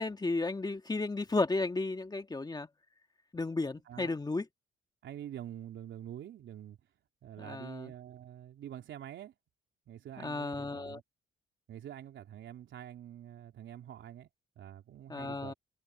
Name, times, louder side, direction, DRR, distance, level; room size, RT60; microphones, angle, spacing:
voice 1, 0.0-2.7 3.3-4.4 7.4-7.9 10.2-11.0 15.1-15.5, left 3 dB, 20° left, 1.9 m, -33 dB
voice 2, 3.9-4.2 5.0-6.8 7.2-9.3 9.9-11.0 11.7-14.3 14.6-15.5, right 11 dB, 70° right, 3.7 m, -46 dB
cardioid pair, 90°, 20 cm